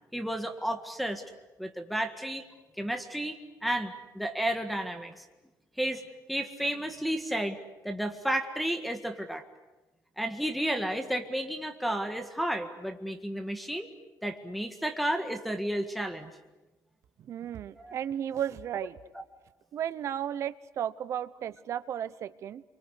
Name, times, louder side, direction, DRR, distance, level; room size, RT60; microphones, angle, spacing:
voice 1, 0.1-1.2 1.6-2.5 2.8-5.2 5.8-6.0 6.3-7.6 7.8-9.4 10.2-13.9 14.2-16.3 17.8-18.0, right 1 dB, ahead, 4 dB, 1.8 m, -32 dB
voice 2, 17.3-19.0 19.7-22.6, right 10 dB, 45° right, 15 dB, 0.9 m, -34 dB
28.0 x 24.0 x 8.2 m, 1.1 s
cardioid pair, 165°, 7 cm